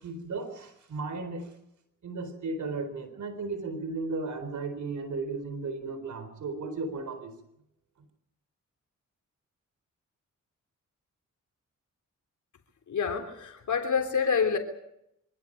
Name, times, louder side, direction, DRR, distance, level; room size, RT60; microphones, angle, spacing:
voice 1, 0.0-1.5 2.0-7.3, right 3 dB, 70° right, 11 dB, 4.1 m, -35 dB
voice 2, 12.9-14.6, left 6 dB, 70° left, 5 dB, 3.4 m, -27 dB
25.5 x 16.5 x 8.6 m, 0.78 s
cardioid pair, 70°, 31 cm